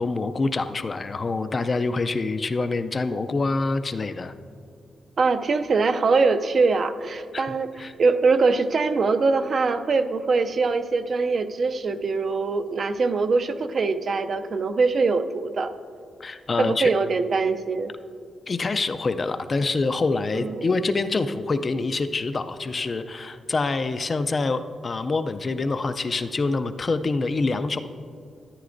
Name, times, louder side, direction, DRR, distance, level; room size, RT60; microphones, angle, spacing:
voice 1, 0.0-4.3 7.3-7.5 7.8-7.9 16.2-16.9 18.5-27.8, left 3 dB, 30° left, 10 dB, 0.3 m, -26 dB
voice 2, 5.2-15.7 16.6-17.9 20.3-20.7, right 4 dB, 45° right, 10 dB, 0.4 m, -23 dB
13.0 x 10.5 x 2.5 m, 2.3 s
wide cardioid pair, 150°, 0 cm